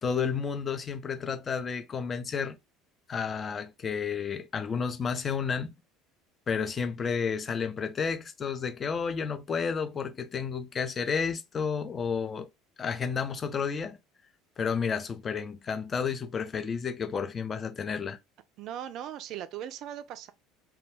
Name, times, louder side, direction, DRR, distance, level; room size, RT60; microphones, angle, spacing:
voice 1, 0.0-2.6 3.1-5.7 6.5-12.5 12.8-14.0 14.6-18.2, left 6 dB, 30° left, 0.4 m, -31 dB
voice 2, 18.6-20.3, right 10 dB, 50° right, 0.3 m, -39 dB
2.3 x 2.2 x 3.1 m
figure-of-eight pair, 65°, 0 cm